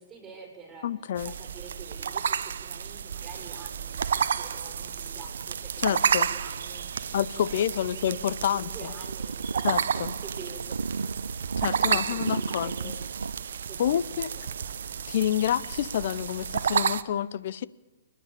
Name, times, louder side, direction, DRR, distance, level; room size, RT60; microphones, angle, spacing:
voice 1, 0.0-0.9 1.2-5.8 6.1-8.2 8.4-10.8 11.8-13.2 13.7-14.8, right 4 dB, 15° right, 7.1 m, -47 dB
voice 2, 0.8-1.3 5.8-6.3 7.1-8.9 9.6-10.1 11.6-12.9 13.8-14.3 15.1-17.6, left 10 dB, 60° left, 0.8 m, -28 dB
sound 1, 1.2-17.0, right 7 dB, 70° right, 0.9 m, -31 dB
sound 2, 9.0-13.4, right 4 dB, 90° right, 0.5 m, -34 dB
29.5 x 10.5 x 8.6 m
hypercardioid pair, 130°, 0 cm